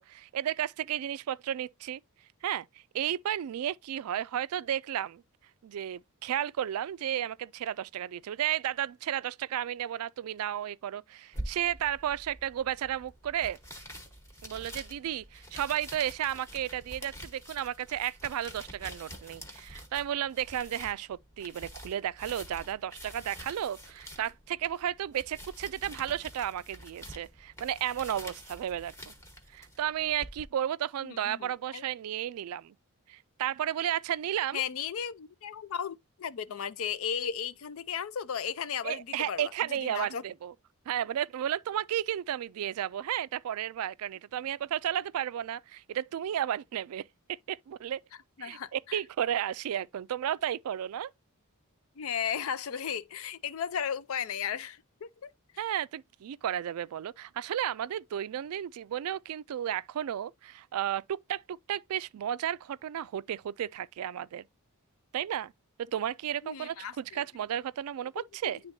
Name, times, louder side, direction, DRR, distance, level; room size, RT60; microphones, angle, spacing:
voice 1, 0.0-2.0 2.4-2.7 2.9-5.2 5.6-13.6 14.4-29.1 29.5-32.7 33.1-34.6 38.8-40.5 40.9-48.0 48.4-51.1 55.6-64.4 65.1-65.5 65.9-68.6, right 10 dB, 75° right, 0.3 m, -33 dB
sound 1, 11.3-30.4, equal, 15° left, 1.2 m, -47 dB
voice 2, 31.0-31.8 34.5-40.2 48.4-49.0 52.0-55.3 55.5-55.6 66.4-67.2 68.2-68.5, left 7 dB, 65° left, 0.4 m, -35 dB
10.5 x 3.6 x 2.6 m
head